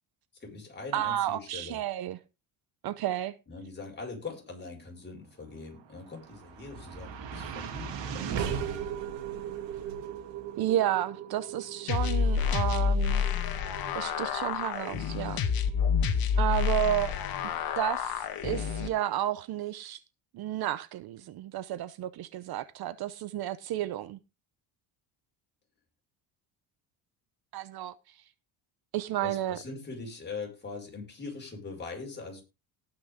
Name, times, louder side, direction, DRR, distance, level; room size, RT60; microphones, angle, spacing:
voice 1, 0.4-1.8 3.5-8.7 29.2-32.4, left 3 dB, 25° left, 5.6 m, -42 dB
voice 2, 0.9-2.2 2.8-3.3 10.6-13.2 13.9-15.4 16.4-17.2 17.8-20.0 20.3-24.2 27.5-27.9 28.9-29.6, right 12 dB, 55° right, 0.8 m, -31 dB
sound 1, 5.8-18.1, right 8 dB, 70° right, 2.7 m, -39 dB
sound 2, 11.9-18.9, left 6 dB, 50° left, 1.8 m, -28 dB
18.5 x 6.2 x 3.7 m
cardioid pair, 130°, 45 cm